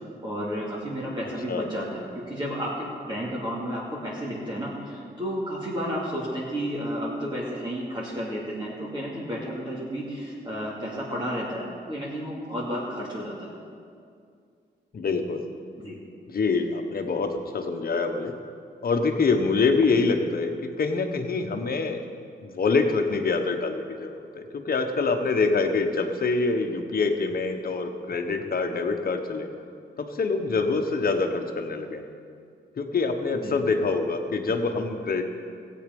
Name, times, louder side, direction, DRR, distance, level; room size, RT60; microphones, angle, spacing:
voice 1, 0.2-13.5 15.8-16.0 20.0-20.1 33.3-33.6, equal, 25° right, -7 dB, 2.7 m, -32 dB
voice 2, 14.9-15.4 16.3-18.3 18.8-22.0 22.4-29.5 30.0-32.0 32.7-35.2, left 4 dB, 50° left, 5 dB, 1.3 m, -25 dB
15.5 x 8.8 x 5.4 m, 2.3 s
cardioid pair, 85°, 19 cm